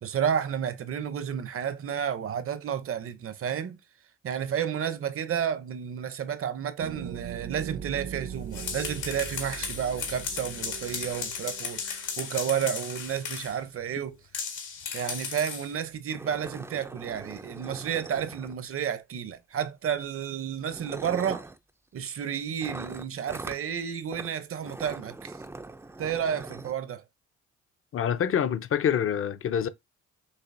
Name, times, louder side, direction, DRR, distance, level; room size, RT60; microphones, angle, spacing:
voice 1, 0.0-3.8 4.2-14.2 14.9-21.5 21.9-25.4 26.0-27.0, right 8 dB, 45° right, 0.7 m, -31 dB
sound 1, 6.8-12.2, right 8 dB, 85° right, 1.1 m, -41 dB
sound 2, 8.3-13.6 14.3-15.7, left 6 dB, 80° left, 1.6 m, -35 dB
sound 3, 15.4-15.5 15.7-15.8 16.1-18.9 19.9-20.1 20.6-21.6 22.6-23.6 24.1-24.3 24.6-26.7, right 2 dB, 10° right, 0.4 m, -41 dB
voice 2, 27.9-29.7, left 8 dB, 45° left, 0.6 m, -26 dB
6.6 x 2.9 x 2.6 m
cardioid pair, 90°, 30 cm